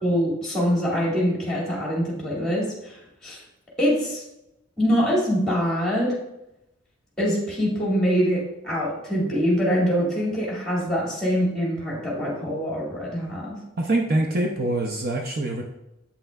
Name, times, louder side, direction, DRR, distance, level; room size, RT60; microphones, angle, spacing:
voice 1, 0.0-3.0 3.2-3.4 3.8-4.2 4.8-6.1 7.2-13.6, equal, 5° left, -4 dB, 2.1 m, -24 dB
voice 2, 13.8-15.6, right 2 dB, 45° right, 1 dB, 0.6 m, -24 dB
8.3 x 5.7 x 2.3 m, 0.88 s
head